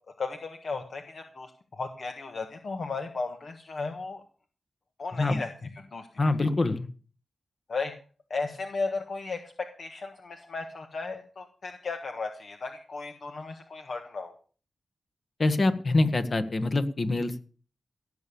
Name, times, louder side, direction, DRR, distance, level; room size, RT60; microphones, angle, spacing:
voice 1, 0.2-4.2 5.0-6.1 7.7-7.9 8.3-14.3, left 4 dB, 60° left, 5 dB, 1.4 m, -35 dB
voice 2, 6.2-6.9 15.4-17.4, left 2 dB, 45° left, 9 dB, 1.5 m, -25 dB
17.0 x 7.1 x 7.0 m, 0.41 s
wide cardioid pair, 95°, 0 cm